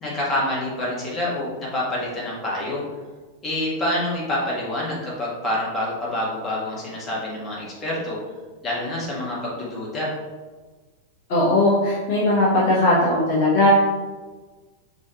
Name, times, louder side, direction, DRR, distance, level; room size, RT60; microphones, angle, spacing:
voice 1, 0.0-2.8 3.4-8.2 8.6-10.1, left 1 dB, 25° left, -5 dB, 1.5 m, -27 dB
voice 2, 11.3-13.7, left 2 dB, 50° left, -6 dB, 0.9 m, -18 dB
5.4 x 2.9 x 2.9 m, 1.3 s
figure-of-eight pair, 90°, 0 cm